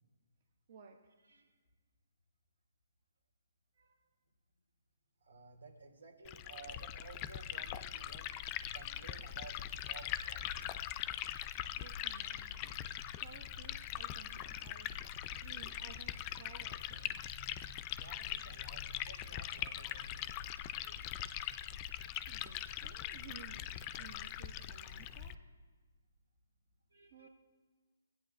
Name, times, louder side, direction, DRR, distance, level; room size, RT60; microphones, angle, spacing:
voice 1, 0.7-1.1 11.8-14.9 15.4-17.2 22.3-23.7 23.9-25.4 27.1-27.3, right 7 dB, 45° right, 2 dB, 0.8 m, -57 dB
voice 2, 5.2-8.3 8.6-9.6 9.8-10.4 18.0-20.3 20.6-21.2 26.9-27.3, right 4 dB, 85° right, 1 dB, 2.7 m, -55 dB
Liquid, 6.2-25.3, left 11 dB, 25° left, 0.4 m, -42 dB
17.0 x 8.9 x 2.5 m, 1.4 s
hypercardioid pair, 150°, 0 cm